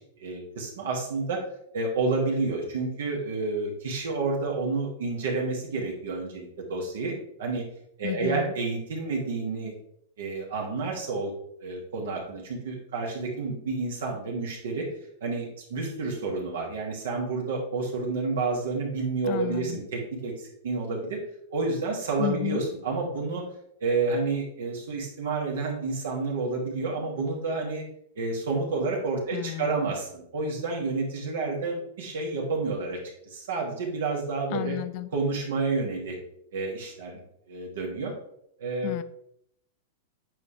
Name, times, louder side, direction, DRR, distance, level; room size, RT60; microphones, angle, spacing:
voice 1, 0.0-1.4 1.7-7.6 8.0-9.7 10.2-11.3 11.6-14.9 15.2-21.2 21.5-23.4 23.8-27.8 28.2-34.7 35.1-36.2 36.5-37.2 37.5-38.1 38.6-38.9, right 3 dB, 85° right, 0 dB, 2.6 m, -30 dB
voice 2, 8.0-8.5 19.2-19.8 22.2-22.6 29.3-30.0 34.5-35.1 38.8-39.0, left 16 dB, 50° left, 13 dB, 0.5 m, -32 dB
8.9 x 5.6 x 3.5 m, 0.73 s
supercardioid pair, 140°, 0 cm